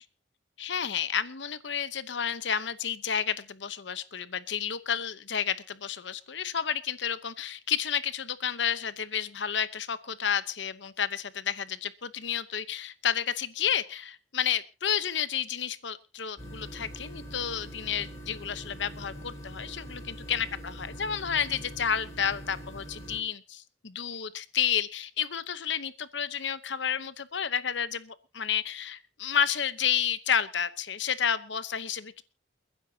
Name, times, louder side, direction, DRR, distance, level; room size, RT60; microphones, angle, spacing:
voice 1, 0.6-32.2, left 8 dB, 80° left, 15 dB, 0.9 m, -31 dB
sound 1, 16.4-23.2, equal, 15° left, 4.9 m, -43 dB
29.5 x 10.0 x 2.8 m, 0.30 s
head